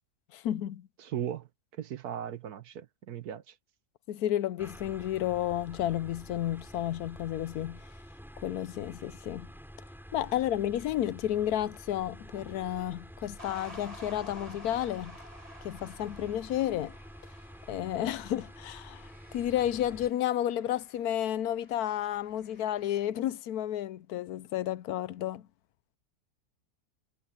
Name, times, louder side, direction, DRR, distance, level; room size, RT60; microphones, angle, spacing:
voice 1, 0.3-0.9 4.1-7.8 8.4-9.5 10.1-15.2 15.6-16.9 17.7-25.4, left 12 dB, 75° left, 1.1 m, -31 dB
voice 2, 1.0-1.5 1.7-3.5, right 9 dB, 75° right, 1.5 m, -37 dB
sound 1, 4.6-20.1, equal, ahead, 6.7 m, -49 dB
sound 2, 12.5-23.1, left 1 dB, 25° left, 7.7 m, -65 dB
sound 3, 13.4-19.9, equal, 20° right, 7.4 m, -51 dB
omnidirectional pair, 1.6 m